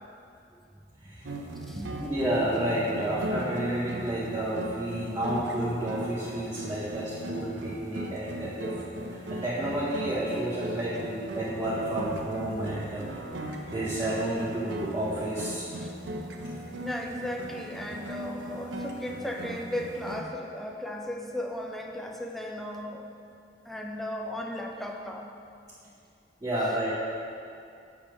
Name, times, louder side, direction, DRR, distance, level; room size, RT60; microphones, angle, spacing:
voice 1, 1.0-1.3 1.8-13.1 13.4-15.7 26.4-26.9, right 1 dB, 20° right, -8 dB, 0.8 m, -31 dB
sound 1, 1.2-20.2, right 1 dB, 85° right, 0.6 m, -38 dB
voice 2, 16.8-23.1 23.7-25.3, left 1 dB, ahead, 1 dB, 0.5 m, -36 dB
7.2 x 3.5 x 6.0 m, 2.5 s
head